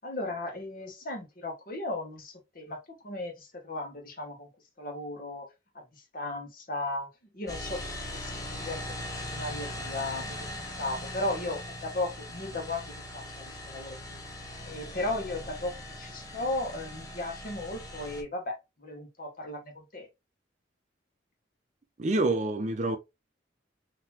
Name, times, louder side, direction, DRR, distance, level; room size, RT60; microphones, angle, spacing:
voice 1, 0.0-4.5 4.8-5.5 6.1-7.1 7.3-7.8 8.1-8.3 8.6-10.5 10.8-12.8 13.1-14.2 14.7-20.1, left 2 dB, 50° left, 1.2 m, -36 dB
sound 1, 7.5-18.2, left 1 dB, 20° left, 0.7 m, -40 dB
voice 2, 22.0-23.0, right 2 dB, 40° right, 0.6 m, -27 dB
3.8 x 2.9 x 2.9 m
head